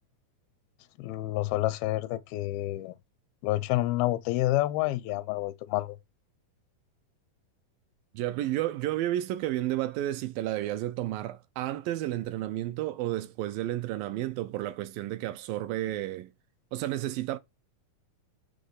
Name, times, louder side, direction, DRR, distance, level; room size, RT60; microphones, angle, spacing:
voice 1, 1.0-3.0 3.4-6.0, left 16 dB, 85° left, 2.4 m, -28 dB
voice 2, 8.1-16.3 16.7-17.4, right 14 dB, 80° right, 2.2 m, -31 dB
8.7 x 3.1 x 5.6 m
omnidirectional pair, 4.3 m